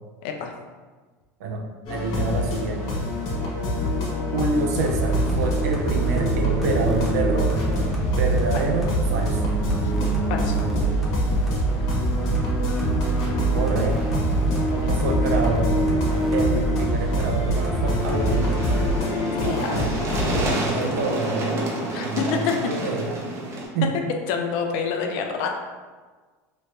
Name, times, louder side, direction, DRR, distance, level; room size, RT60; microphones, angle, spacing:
voice 1, 0.2-0.5 8.5-8.6 9.8-9.9 10.3-10.6 14.8-14.9 19.3-19.8 21.9-22.5 24.3-25.5, left 6 dB, 65° left, 3 dB, 0.5 m, -27 dB
voice 2, 1.4-3.0 4.3-7.6 8.2-9.5 13.5-14.0 14.7-15.8 16.3-18.7 19.4-19.9 20.3-23.2 23.7-23.9, right 3 dB, 85° right, 1 dB, 0.6 m, -28 dB
sound 1, 1.9-20.5, left 2 dB, 45° left, 1.1 m, -26 dB
sound 2, 4.8-19.0, right 3 dB, ahead, 0.6 m, -25 dB
sound 3, 18.0-23.7, right 1 dB, 35° right, 0.7 m, -29 dB
3.0 x 2.7 x 3.2 m, 1.4 s
supercardioid pair, 130°, 9 cm